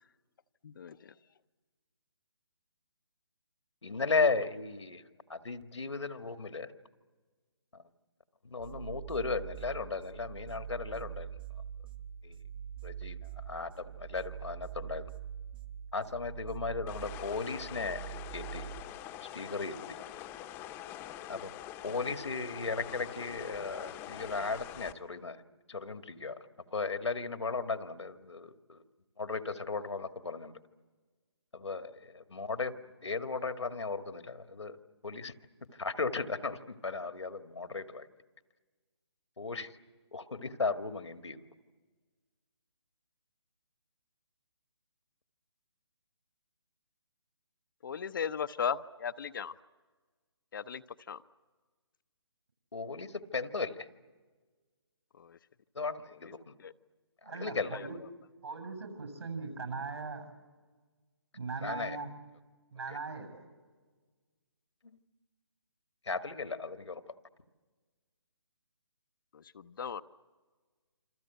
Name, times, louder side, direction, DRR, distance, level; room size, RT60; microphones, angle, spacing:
voice 1, 0.6-1.1 47.8-49.5 50.5-51.2 55.2-55.4 56.2-56.3 56.6-56.7 57.4-57.5 57.7-57.9 69.3-70.0, left 7 dB, 50° left, 12 dB, 0.8 m, -37 dB
voice 2, 3.8-5.0 5.3-6.7 7.7-7.8 8.4-11.3 12.2-12.4 12.8-13.2 13.4-15.1 15.9-18.7 19.2-20.0 21.3-21.5 21.8-25.4 25.7-26.4 26.7-28.8 29.2-30.5 31.5-32.7 33.0-34.8 35.0-35.3 35.7-38.1 39.4-39.7 40.1-41.4 52.7-53.9 55.7-56.5 57.4-57.8 61.6-62.0 64.8-65.0 66.0-67.0, left 4 dB, 80° left, 8 dB, 1.8 m, -36 dB
sound 1, 8.6-18.8, right 9 dB, 50° right, 1.8 m, -44 dB
sound 2, 16.9-24.9, left 12 dB, 15° left, 1.0 m, -45 dB
voice 3, 57.2-58.0 58.4-60.3 61.3-62.1 62.7-63.4, right 4 dB, 65° right, 8 dB, 7.8 m, -40 dB
27.5 x 27.0 x 8.1 m, 1.4 s
figure-of-eight pair, 150°, 14 cm